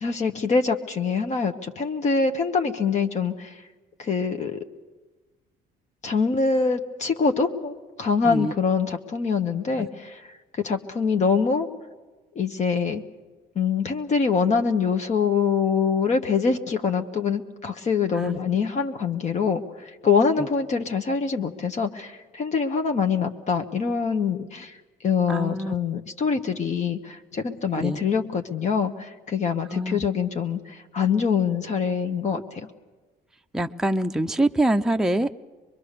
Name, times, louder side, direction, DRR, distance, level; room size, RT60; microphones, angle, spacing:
voice 1, 0.0-3.6 4.0-4.6 6.0-10.3 10.5-11.7 12.3-13.0 13.5-24.8 25.0-32.7, left 5 dB, 45° left, 5 dB, 1.2 m, -24 dB
voice 2, 25.3-25.7 27.7-28.0 29.7-30.1 33.5-35.3, right 1 dB, 5° right, 5 dB, 0.6 m, -25 dB
23.5 x 22.5 x 6.7 m, 1.3 s
cardioid pair, 110°, 17 cm